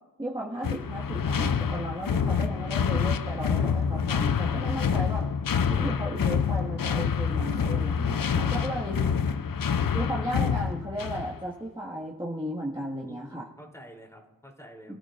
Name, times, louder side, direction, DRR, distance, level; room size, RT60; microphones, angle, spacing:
voice 1, 0.2-5.3 5.7-9.0 9.9-13.5 14.9-15.0, right 1 dB, 15° right, -5 dB, 1.8 m, -35 dB
sound 1, 0.6-11.4, left 6 dB, 70° left, 0.6 m, -27 dB
voice 2, 2.3-2.6 8.3-9.1 13.1-14.9, right 1 dB, 10° left, 0 dB, 3.3 m, -49 dB
26.0 x 13.5 x 2.6 m, 1.0 s
wide cardioid pair, 50°, 36 cm